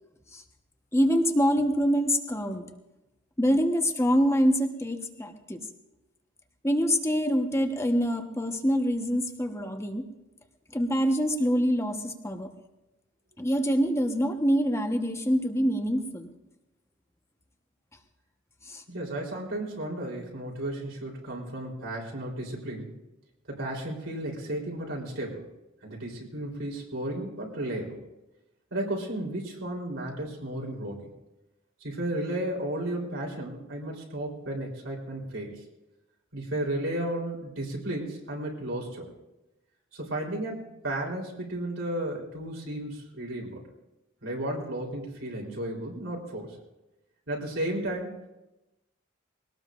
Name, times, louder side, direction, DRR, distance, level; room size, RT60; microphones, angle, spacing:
voice 1, 0.9-2.6 3.4-5.6 6.6-10.1 10.7-12.5 13.4-16.3 18.7-18.8, equal, 15° left, 5 dB, 1.2 m, -25 dB
voice 2, 18.9-23.0 23.5-25.5 25.8-28.0 28.7-31.1 31.8-35.6 36.3-39.1 39.9-43.6 44.2-46.6 47.3-48.1, right 1 dB, 85° right, -2 dB, 3.8 m, -33 dB
22.5 x 18.5 x 2.6 m, 0.96 s
head